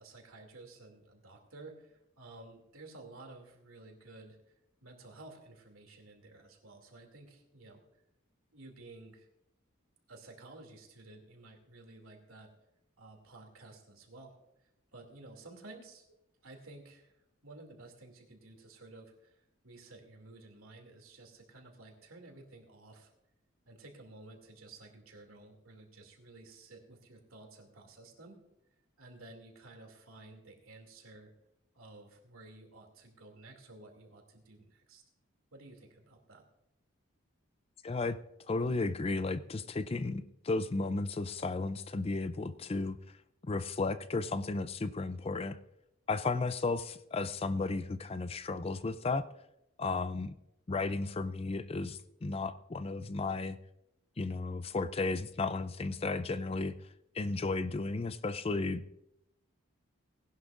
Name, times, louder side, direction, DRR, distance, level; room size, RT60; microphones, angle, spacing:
voice 1, 0.0-4.4 4.8-8.0 8.5-9.3 10.1-12.5 13.0-16.0 16.4-23.1 23.7-28.4 29.0-31.3 31.7-35.0 35.5-36.4, right 2 dB, 85° right, 3 dB, 2.6 m, -53 dB
voice 2, 37.8-38.2 38.5-43.2 43.5-45.6 46.1-49.3 49.8-50.3 50.7-53.6 54.2-56.7 57.1-58.8, left 3 dB, 30° left, 13 dB, 0.4 m, -34 dB
19.5 x 11.0 x 2.5 m, 0.82 s
head